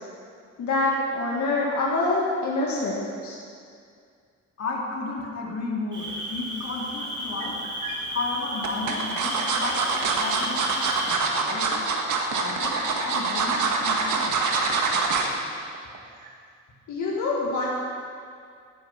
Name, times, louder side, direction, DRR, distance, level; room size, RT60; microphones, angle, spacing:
voice 1, 0.6-3.4 16.9-17.7, left 2 dB, 75° left, -4 dB, 2.1 m, -25 dB
voice 2, 4.6-7.6 8.1-11.9 12.3-14.4, left 3 dB, 55° left, -2 dB, 2.9 m, -33 dB
Cricket, 5.9-11.1, right 1 dB, 40° right, 4.1 m, -34 dB
sound 1, 7.4-7.9 8.6-15.3 15.7-16.0 16.3-16.4, right 4 dB, 80° right, 1.9 m, -25 dB
18.0 x 9.9 x 6.0 m, 2.2 s
cardioid pair, 130°, 29 cm